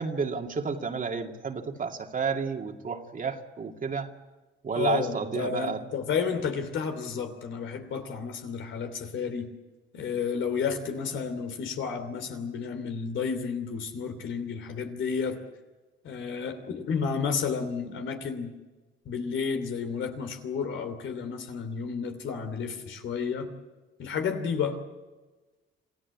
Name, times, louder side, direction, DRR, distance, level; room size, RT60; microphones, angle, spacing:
voice 1, 0.0-4.1 4.6-5.8, right 5 dB, 40° right, 4 dB, 2.3 m, -31 dB
voice 2, 4.7-9.5 9.9-15.4 16.0-18.5 19.0-23.5 24.0-24.8, left 6 dB, 75° left, 6 dB, 3.1 m, -31 dB
27.0 x 15.0 x 8.5 m, 1.2 s
cardioid pair, 90°, 20 cm